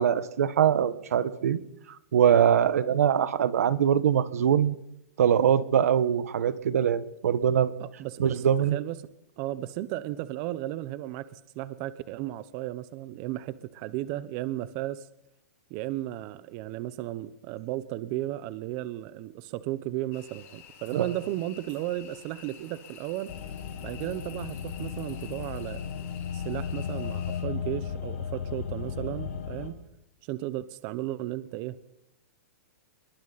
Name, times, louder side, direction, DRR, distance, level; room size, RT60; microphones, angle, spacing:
voice 1, 0.0-1.6 2.1-4.7 5.2-7.7 8.2-8.8 21.0-21.1, right 9 dB, 80° right, 14 dB, 1.4 m, -23 dB
voice 2, 7.8-8.4 8.7-9.0 9.4-15.1 15.7-23.4 23.8-25.8 26.3-29.8 30.2-31.9, right 15 dB, 35° right, 14 dB, 0.9 m, -34 dB
sound 1, 20.1-27.4, left 8 dB, 30° left, 6.4 m, -50 dB
sound 2, 23.3-29.7, left 7 dB, 65° left, 5.4 m, -35 dB
29.0 x 22.0 x 4.2 m, 0.80 s
hypercardioid pair, 155°, 8 cm